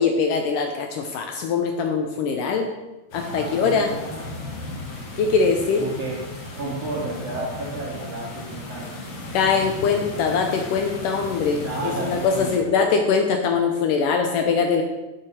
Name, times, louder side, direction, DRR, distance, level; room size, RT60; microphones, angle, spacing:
voice 1, 0.0-2.7 3.1-3.9 5.2-5.9 9.3-11.6 12.0-14.8, left 5 dB, 75° left, 4 dB, 2.3 m, -22 dB
sound 1, 3.1-12.6, left 2 dB, 60° left, 3.4 m, -35 dB
voice 2, 3.2-4.6 5.7-6.2 6.5-9.0 11.6-12.7, right 2 dB, 50° right, -6 dB, 3.0 m, -32 dB
10.5 x 7.7 x 6.3 m, 1.1 s
omnidirectional pair, 4.1 m